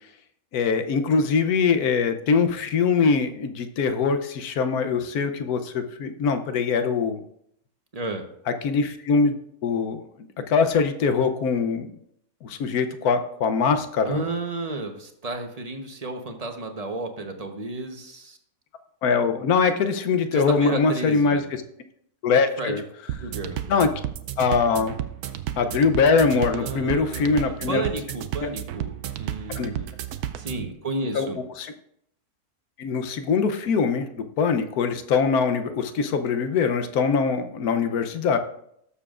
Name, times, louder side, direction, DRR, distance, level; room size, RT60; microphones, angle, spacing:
voice 1, 0.5-7.2 8.6-10.0 10.4-11.9 12.4-14.2 19.0-21.4 22.2-22.8 23.7-23.9 24.4-24.9 25.6-27.9 28.4-28.5 29.6-29.7 31.1-31.3 31.6-31.7 32.8-38.4, left 5 dB, 80° left, 8 dB, 1.3 m, -22 dB
voice 2, 7.9-8.2 14.0-18.4 20.3-21.4 22.6-22.7 23.2-23.6 26.5-29.9 30.4-31.4, right 2 dB, 30° right, 5 dB, 0.9 m, -32 dB
sound 1, 23.1-30.7, right 11 dB, 85° right, 1.1 m, -33 dB
18.0 x 6.9 x 2.5 m, 0.73 s
omnidirectional pair, 1.6 m